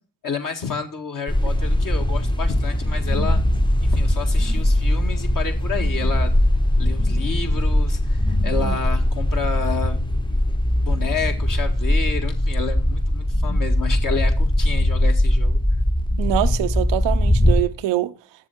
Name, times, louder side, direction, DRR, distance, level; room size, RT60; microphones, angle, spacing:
voice 1, 0.2-3.4 3.8-6.3 6.8-10.0 10.3-15.6, left 5 dB, 50° left, 1.8 m, -30 dB
sound 1, 1.3-17.6, left 1 dB, 10° left, 0.8 m, -20 dB
voice 2, 16.2-18.1, right 14 dB, 80° right, 0.6 m, -24 dB
7.3 x 7.0 x 5.9 m
hypercardioid pair, 45°, 43 cm